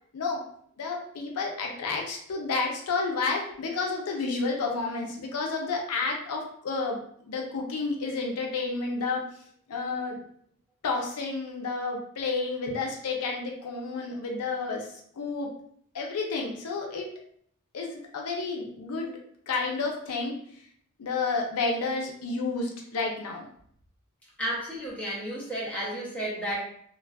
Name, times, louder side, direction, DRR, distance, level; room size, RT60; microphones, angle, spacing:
voice 1, 0.1-0.4 0.8-9.2 9.7-10.2 10.8-14.9 15.2-15.5 15.9-17.1 17.7-19.1 19.5-20.3 21.0-23.4, left 4 dB, 90° left, 0 dB, 0.5 m, -30 dB
voice 2, 24.4-26.6, equal, 5° left, -7 dB, 0.6 m, -32 dB
2.5 x 2.3 x 2.2 m, 0.64 s
head